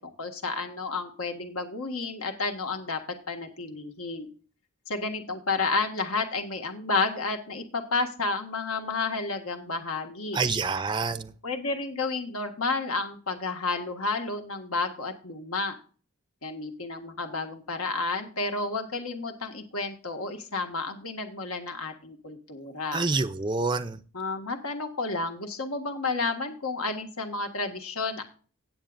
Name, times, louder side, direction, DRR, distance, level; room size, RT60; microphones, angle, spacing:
voice 1, 0.0-3.0 3.3-4.3 4.9-10.4 11.4-15.8 16.4-23.1 24.1-28.2, left 3 dB, 85° left, 1.7 m, -31 dB
voice 2, 10.3-11.3 22.9-24.0, right 4 dB, 20° right, 0.4 m, -27 dB
17.5 x 7.5 x 2.5 m
head